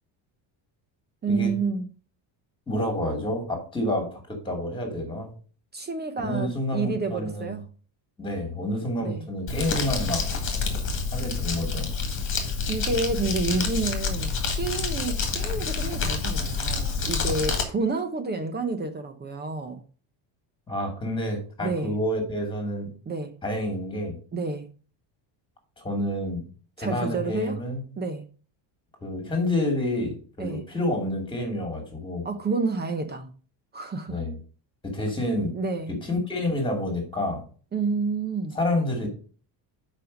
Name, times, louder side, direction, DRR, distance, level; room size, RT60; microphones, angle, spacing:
voice 1, 1.2-1.9 5.7-7.6 9.0-9.3 12.7-14.3 14.6-19.8 21.6-22.0 23.1-23.3 24.3-24.7 26.8-27.6 28.0-28.3 30.4-30.6 32.2-33.3 33.7-34.2 35.5-36.0 37.7-38.6, right 3 dB, 20° right, 8 dB, 0.8 m, -29 dB
voice 2, 2.7-5.3 6.2-7.6 8.2-10.3 11.1-11.9 20.7-22.9 23.4-24.2 25.8-26.4 26.8-27.8 29.0-32.3 34.1-34.4 34.8-35.5 36.0-37.4 38.5-39.1, left 1 dB, 10° left, 3 dB, 2.6 m, -28 dB
Crumpling crinkling, 9.5-17.6, left 4 dB, 25° left, 1.9 m, -28 dB
7.4 x 5.3 x 5.1 m, 0.38 s
cardioid pair, 170°, 45 cm